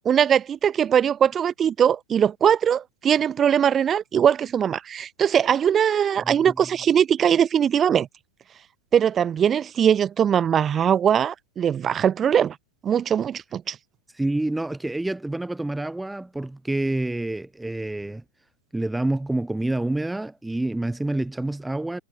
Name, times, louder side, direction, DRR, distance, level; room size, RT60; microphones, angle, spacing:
voice 1, 0.1-8.1 8.9-12.6 12.8-13.8, right 8 dB, 25° right, 0.3 m, -21 dB
voice 2, 6.2-6.5 14.2-18.2 18.7-22.0, right 2 dB, 5° right, 1.2 m, -27 dB
figure-of-eight pair, 90°, 0 cm